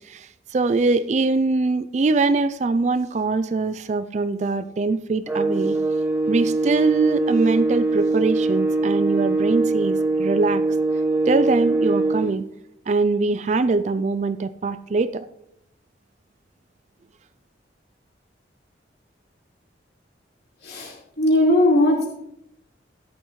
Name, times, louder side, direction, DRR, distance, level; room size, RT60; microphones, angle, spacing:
voice 1, 0.0-5.8 6.3-10.6 11.3-12.5 12.9-15.3, right 3 dB, 40° right, 13 dB, 0.3 m, -22 dB
sound 1, 5.3-12.3, right 3 dB, 10° right, 0.7 m, -22 dB
voice 2, 20.6-22.1, left 1 dB, 60° left, -3 dB, 3.7 m, -19 dB
13.0 x 11.5 x 3.1 m, 0.80 s
head